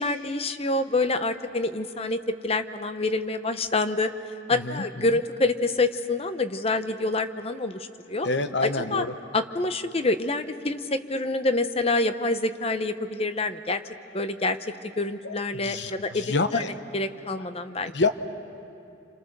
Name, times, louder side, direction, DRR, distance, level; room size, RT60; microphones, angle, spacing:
voice 1, 0.0-4.1 4.5-8.3 8.6-9.0 9.3-13.8 14.1-16.2 16.5-16.6 16.9-17.9, left 2 dB, 30° left, 10 dB, 0.8 m, -27 dB
voice 2, 4.5-5.1 8.2-9.1 15.2-16.7 17.8-18.1, left 3 dB, 65° left, 10 dB, 0.9 m, -28 dB
28.5 x 27.0 x 6.7 m, 2.6 s
head